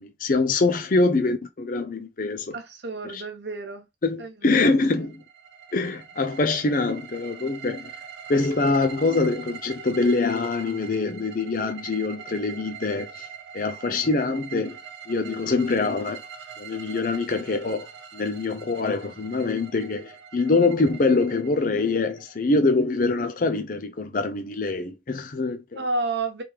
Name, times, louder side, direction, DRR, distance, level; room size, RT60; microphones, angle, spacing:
voice 1, 0.0-2.5 3.1-3.2 4.0-5.1 5.7-7.9 8.3-13.3 13.5-14.8 15.1-16.2 16.6-25.8, left 3 dB, 45° left, 0.5 m, -24 dB
voice 2, 2.5-3.8 4.2-4.7 5.0-5.1 25.8-26.4, right 3 dB, 60° right, 1.0 m, -30 dB
sound 1, 4.9-22.7, right 7 dB, 80° right, 1.2 m, -43 dB
3.5 x 3.1 x 4.8 m
head